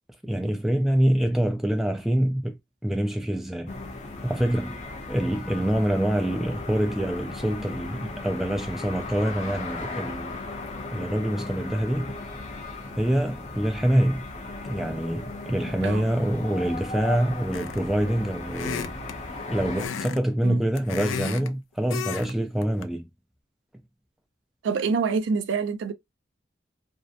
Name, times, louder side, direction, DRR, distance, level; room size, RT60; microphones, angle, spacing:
voice 1, 0.2-2.6 2.8-3.7 4.2-4.8 5.1-10.4 10.9-12.1 13.0-14.3 14.6-18.9 19.5-23.1, right 1 dB, ahead, 0.4 m, -25 dB
sound 1, 3.7-19.9, left 3 dB, 40° left, 0.6 m, -37 dB
sound 2, 17.5-17.9 18.5-19.2 19.8-20.2 20.5-21.5 21.9-22.3 22.6-22.8, left 7 dB, 85° left, 0.4 m, -32 dB
voice 2, 24.6-25.9, right 5 dB, 75° right, 0.4 m, -26 dB
2.7 x 2.1 x 2.4 m
head